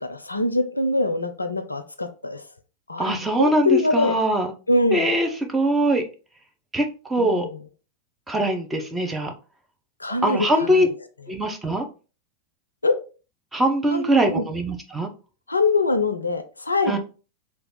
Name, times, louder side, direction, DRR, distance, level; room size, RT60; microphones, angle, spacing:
voice 1, 0.1-2.4 2.9-4.1 4.7-5.1 7.2-7.6 10.0-10.9 12.8-12.9 13.9-14.5 15.5-17.0, left 2 dB, 80° left, 8 dB, 0.4 m, -23 dB
voice 2, 3.0-4.5 4.9-6.0 6.7-6.8 7.1-7.5 8.3-9.3 10.2-10.9 11.3-11.9 13.5-15.1 16.9-17.0, right 1 dB, 10° right, 3 dB, 0.7 m, -22 dB
3.3 x 2.4 x 3.9 m, 0.34 s
figure-of-eight pair, 90°, 0 cm